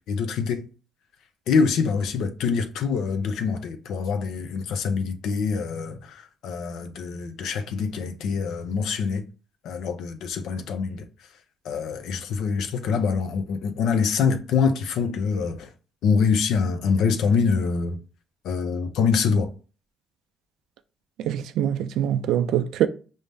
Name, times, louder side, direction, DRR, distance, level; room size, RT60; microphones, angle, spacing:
voice 1, 0.1-0.6 1.5-9.2 9.6-11.1 11.6-15.7 16.0-18.0 18.4-19.5, left 5 dB, 85° left, 0.5 m, -25 dB
voice 2, 21.2-22.9, right 10 dB, 85° right, 0.3 m, -24 dB
5.3 x 2.0 x 3.3 m
cardioid pair, 90°, 0 cm